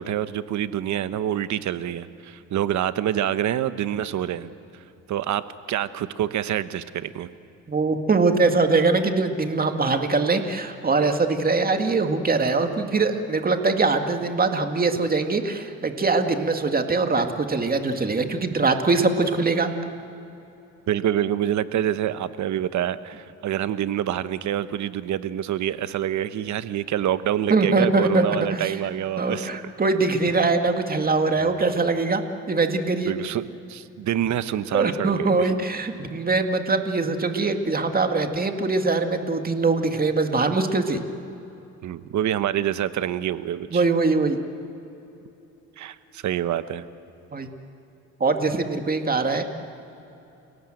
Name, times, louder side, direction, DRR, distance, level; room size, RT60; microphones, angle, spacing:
voice 1, 0.0-4.5 5.1-5.4 5.7-7.3 18.9-19.0 20.9-29.5 30.3-30.4 31.4-31.6 33.0-35.5 41.8-43.8 45.8-46.9, right 11 dB, 70° right, 13 dB, 1.0 m, -26 dB
voice 2, 7.7-19.7 27.5-28.7 29.2-32.2 32.5-33.1 34.7-41.0 43.7-44.4 47.3-47.5 48.2-49.4, right 3 dB, 30° right, 6 dB, 2.1 m, -22 dB
30.0 x 18.0 x 7.8 m, 2.9 s
cardioid pair, 90°, 30 cm